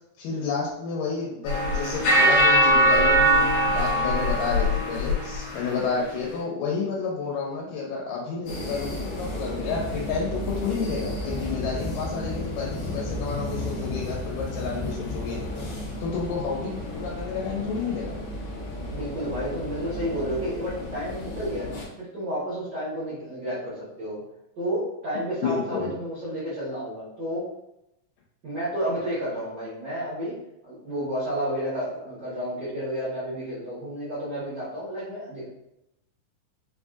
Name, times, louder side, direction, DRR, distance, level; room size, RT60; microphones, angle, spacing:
voice 1, 0.2-15.4 16.0-18.2 25.4-25.9, left 5 dB, 90° left, -3 dB, 2.3 m, -30 dB
sound 1, 1.5-5.7, right 1 dB, 50° left, 2.1 m, -21 dB
sound 2, 8.5-21.8, left 1 dB, 70° left, 1.4 m, -33 dB
voice 2, 18.9-24.2 24.6-27.5 28.4-30.3 30.6-35.5, equal, 85° right, -10 dB, 0.9 m, -31 dB
5.1 x 2.6 x 2.3 m, 0.85 s
omnidirectional pair, 3.8 m